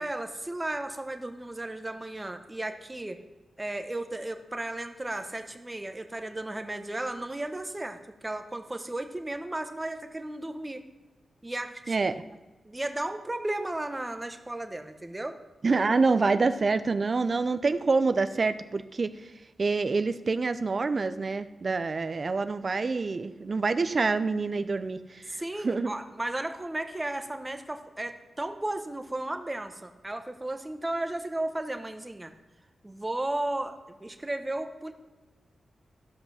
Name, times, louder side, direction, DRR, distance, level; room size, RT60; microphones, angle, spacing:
voice 1, 0.0-3.2 3.6-10.8 11.4-12.0 12.6-15.4 25.3-32.3 32.8-34.9, right 1 dB, 20° right, 7 dB, 1.1 m, -34 dB
voice 2, 11.9-12.2 15.6-19.1 19.6-25.9, right 4 dB, 50° right, 11 dB, 0.6 m, -26 dB
14.0 x 5.6 x 5.6 m, 1.2 s
cardioid pair, 55°, 0 cm